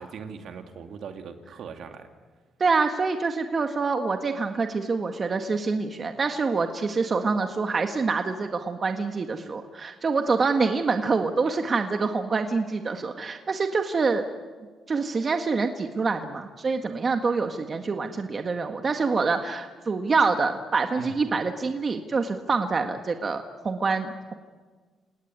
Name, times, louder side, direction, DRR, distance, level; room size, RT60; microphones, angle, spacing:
voice 1, 0.0-2.1 11.5-11.6 20.9-21.2, right 5 dB, 70° right, 5 dB, 2.7 m, -40 dB
voice 2, 2.6-14.2 14.9-24.3, right 4 dB, 40° right, 5 dB, 1.8 m, -26 dB
28.5 x 18.5 x 9.7 m, 1.4 s
cardioid pair, 90°, 0 cm